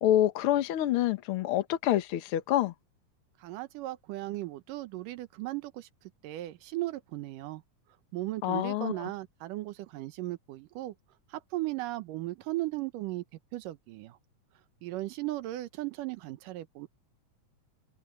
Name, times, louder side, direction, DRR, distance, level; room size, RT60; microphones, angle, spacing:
voice 1, 0.0-2.7 8.4-9.1, left 12 dB, 75° left, 1.3 m, -27 dB
voice 2, 3.4-5.9 6.2-7.6 8.1-10.9 11.3-13.2 13.5-14.2 14.8-16.9, right 17 dB, 75° right, 2.5 m, -36 dB
omnidirectional pair, 3.9 m